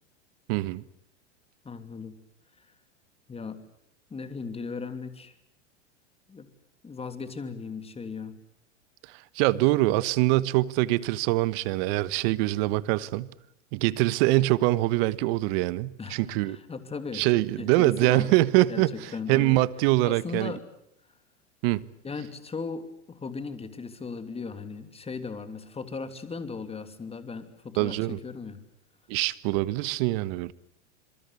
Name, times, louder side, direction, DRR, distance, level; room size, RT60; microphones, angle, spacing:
voice 1, 0.5-0.8 9.1-13.3 13.7-16.6 17.1-20.6 21.6-21.8 27.8-28.2 29.1-30.5, right 18 dB, 55° right, 1.3 m, -24 dB
voice 2, 1.6-2.1 3.3-3.6 4.1-5.3 6.3-6.5 6.8-8.3 16.0-17.2 17.6-18.4 18.7-19.6 20.0-20.6 22.0-28.6, left 4 dB, 15° left, 3.0 m, -37 dB
26.5 x 23.0 x 8.3 m
hypercardioid pair, 110°, 36 cm